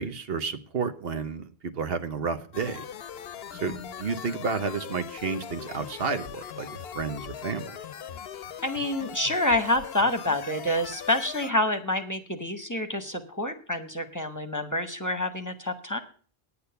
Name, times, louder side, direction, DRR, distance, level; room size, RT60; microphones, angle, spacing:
voice 1, 0.0-2.9 3.6-7.7, right 5 dB, 75° right, 9 dB, 1.1 m, -31 dB
sound 1, 2.5-11.5, left 8 dB, 80° left, 0.9 m, -40 dB
voice 2, 8.6-16.0, left 1 dB, 20° left, 8 dB, 1.0 m, -28 dB
9.7 x 8.6 x 6.7 m, 0.43 s
omnidirectional pair, 1.0 m